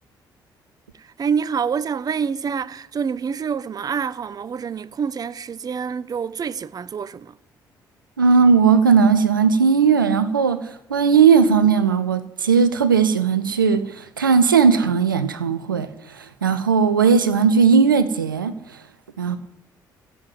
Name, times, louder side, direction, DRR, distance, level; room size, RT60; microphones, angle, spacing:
voice 1, 1.2-7.3, right 6 dB, 35° right, 0.7 m, -26 dB
voice 2, 8.2-10.6 10.9-15.9 16.1-18.5 19.2-19.4, right 6 dB, 85° right, 0.7 m, -17 dB
15.0 x 7.8 x 9.2 m
figure-of-eight pair, 45°, 11 cm